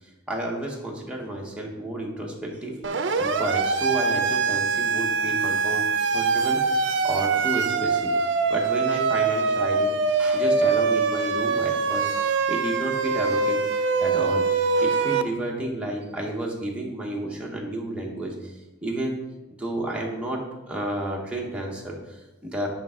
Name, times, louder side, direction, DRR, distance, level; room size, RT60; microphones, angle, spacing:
voice 1, 0.3-2.7 3.2-5.8 6.1-6.8 7.0-8.1 8.5-13.6 14.0-14.5 14.7-18.5 18.8-19.2 19.6-20.4 20.7-22.7, right 1 dB, 5° right, -2 dB, 0.9 m, -31 dB
Siren, 2.8-15.2, right 4 dB, 65° right, 0.4 m, -23 dB
6.7 x 5.2 x 3.6 m, 1.1 s
head